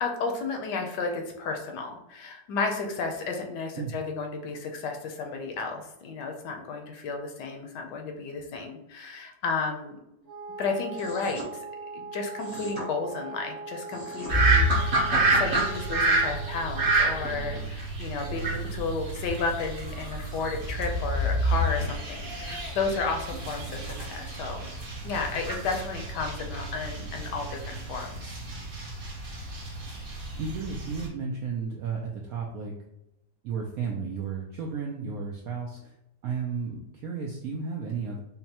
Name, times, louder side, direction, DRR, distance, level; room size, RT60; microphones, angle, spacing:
voice 1, 0.0-10.0 10.6-11.6 11.9-24.7 25.0-28.3, left 4 dB, 70° left, 3 dB, 1.2 m, -33 dB
Wind instrument woodwind instrument, 10.2-17.7, right 3 dB, 55° right, 1.4 m, -41 dB
sound 1, 10.9-11.5 12.4-12.9 13.7-14.3, equal, 20° left, 0.4 m, -41 dB
sound 2, 14.3-31.1, right 2 dB, 40° right, 0.8 m, -29 dB
voice 2, 30.4-32.7 33.4-36.0 36.2-38.2, right 5 dB, 75° right, 0 dB, 0.8 m, -33 dB
5.4 x 2.1 x 2.8 m, 0.87 s
omnidirectional pair, 2.0 m